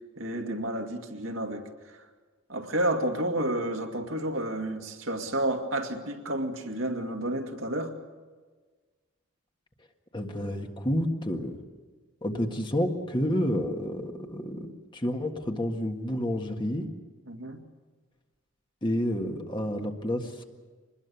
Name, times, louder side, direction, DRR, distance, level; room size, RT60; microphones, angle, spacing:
voice 1, 0.2-1.7 2.5-7.9 17.3-17.6, right 1 dB, 70° right, 2.2 m, -30 dB
voice 2, 10.1-11.6 12.2-16.9 18.8-20.6, equal, 20° left, 1.7 m, -30 dB
25.0 x 20.5 x 7.0 m
head